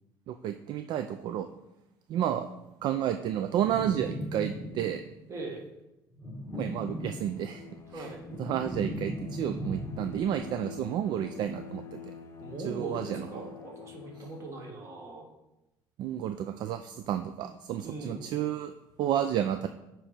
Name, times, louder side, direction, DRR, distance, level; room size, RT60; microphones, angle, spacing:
voice 1, 0.3-1.5 2.1-2.5 2.8-5.0 6.6-7.6 8.0-8.1 8.4-12.0 12.7-13.5 16.0-18.7 19.0-19.7, right 10 dB, 60° right, 8 dB, 0.4 m, -31 dB
sound 1, 3.6-5.1 6.1-7.6 8.0-10.4, equal, 5° right, 1.5 m, -38 dB
voice 2, 5.3-5.7 7.9-8.2 12.4-15.3 17.8-18.4, right 3 dB, 35° right, 0 dB, 1.6 m, -41 dB
Bowed string instrument, 6.5-15.0, left 8 dB, 35° left, 0.6 m, -47 dB
8.8 x 3.1 x 5.1 m, 0.94 s
cardioid pair, 125°, 9 cm